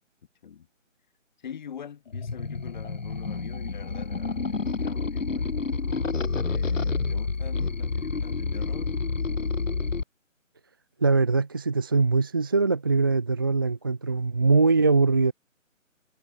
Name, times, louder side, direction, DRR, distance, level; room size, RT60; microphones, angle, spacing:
voice 1, 1.4-5.5 6.5-9.0, left 8 dB, 35° left, 3.7 m, -44 dB
sound 1, 2.1-10.0, left 4 dB, 70° left, 2.6 m, -29 dB
voice 2, 11.0-15.3, right 3 dB, 15° right, 0.7 m, -22 dB
figure-of-eight pair, 150°, 40 cm